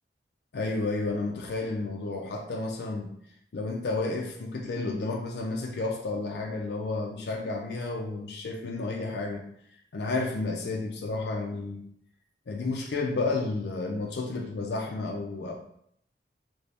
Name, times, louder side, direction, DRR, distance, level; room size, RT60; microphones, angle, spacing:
voice 1, 0.5-3.1 3.5-9.4 9.9-11.8 12.5-15.5, left 3 dB, 70° left, 0 dB, 0.4 m, -31 dB
3.2 x 2.6 x 3.4 m, 0.72 s
head